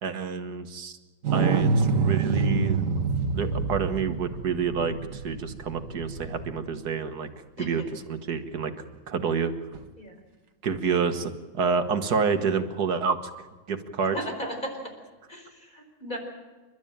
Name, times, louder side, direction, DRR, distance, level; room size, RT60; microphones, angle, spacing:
voice 1, 0.0-0.9 1.3-3.0 3.3-7.3 7.6-8.7 9.1-9.5 10.6-13.2 13.7-14.2, right 5 dB, 65° right, 8 dB, 1.9 m, -28 dB
sound 1, 1.2-6.7 9.7-9.8, right 4 dB, 50° right, 1.6 m, -26 dB
voice 2, 14.1-14.7 15.3-16.2, equal, 25° left, 3 dB, 4.9 m, -35 dB
29.0 x 12.5 x 8.9 m, 1.3 s
omnidirectional pair, 1.9 m